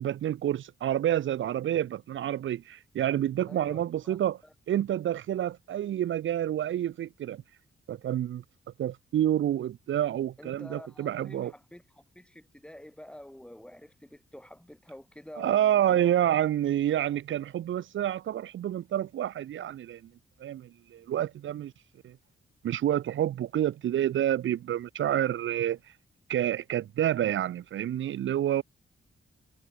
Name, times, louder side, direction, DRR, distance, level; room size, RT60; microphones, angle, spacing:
voice 1, 0.0-4.4 4.7-7.4 7.9-8.4 8.8-11.5 15.4-20.0 20.4-21.7 22.0-22.2 22.6-25.8 26.3-28.6, right 11 dB, 80° right, 0.8 m, -28 dB
voice 2, 3.5-3.8 4.0-4.2 4.4-4.5 10.4-16.1, left 1 dB, 5° left, 2.7 m, -48 dB
cardioid pair, 110°, 20 cm